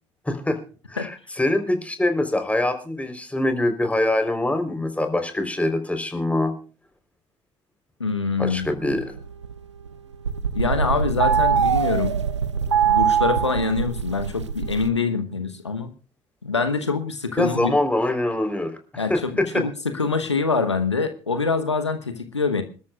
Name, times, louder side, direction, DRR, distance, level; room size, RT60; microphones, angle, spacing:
voice 1, 0.3-0.6 0.9-6.5 8.4-9.2 17.4-19.6, left 1 dB, 10° left, 7 dB, 3.8 m, -24 dB
voice 2, 8.0-8.7 10.5-12.2 12.8-15.9 16.4-17.7 19.0-22.6, left 4 dB, 90° left, 9 dB, 1.0 m, -25 dB
sound 1, 8.6-9.9 10.1-14.9, right 7 dB, 85° right, 0.5 m, -23 dB
27.0 x 13.0 x 2.4 m, 0.37 s
figure-of-eight pair, 55°, 14 cm